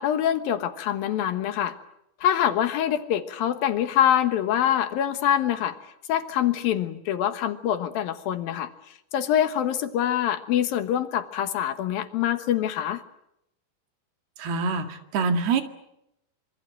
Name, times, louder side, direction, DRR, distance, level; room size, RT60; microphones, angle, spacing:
voice 1, 0.0-1.8 2.2-5.8 6.1-8.7 9.1-13.0, left 10 dB, 65° left, 10 dB, 2.8 m, -25 dB
voice 2, 14.4-15.6, right 4 dB, 70° right, 7 dB, 3.9 m, -25 dB
26.0 x 25.0 x 7.7 m, 0.81 s
omnidirectional pair, 5.0 m